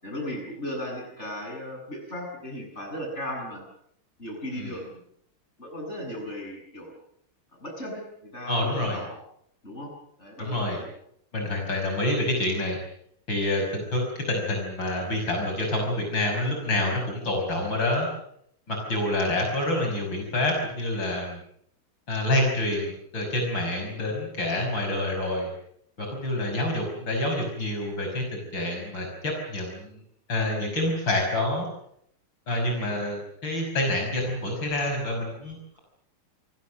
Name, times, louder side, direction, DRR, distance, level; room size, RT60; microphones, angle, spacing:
voice 1, 0.0-3.7 4.2-5.0 5.6-6.9 7.5-8.0 8.3-9.2 9.6-9.9 10.2-10.9, equal, 30° left, 1 dB, 8.4 m, -36 dB
voice 2, 8.5-9.0 10.4-10.8 11.3-12.8 13.3-18.1 18.7-21.4 22.1-25.5 26.0-30.0 30.3-31.7 32.5-35.8, left 1 dB, 60° left, 1 dB, 6.6 m, -27 dB
28.0 x 22.0 x 6.6 m, 0.70 s
omnidirectional pair, 2.3 m